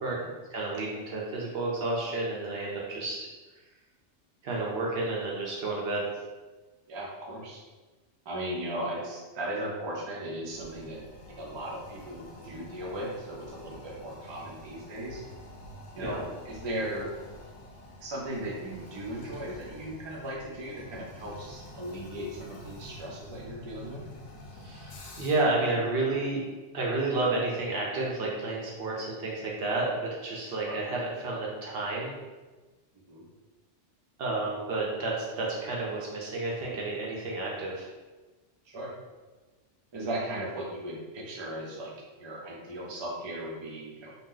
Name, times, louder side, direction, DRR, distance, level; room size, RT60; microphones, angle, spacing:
voice 1, 0.5-3.3 4.4-6.0 16.0-16.2 24.6-26.4 26.7-32.1 34.2-37.9, right 2 dB, 65° right, -3 dB, 0.8 m, -31 dB
voice 2, 6.9-7.6 8.3-11.0 11.4-15.2 16.0-17.1 18.0-24.0 30.6-30.8 33.1-33.2 38.6-38.9 39.9-41.9 42.2-44.1, right 1 dB, 35° right, -3 dB, 0.4 m, -37 dB
Toilet flush, 10.5-25.6, left 1 dB, 80° left, 0.9 m, -47 dB
2.7 x 2.0 x 3.7 m, 1.2 s
omnidirectional pair, 1.2 m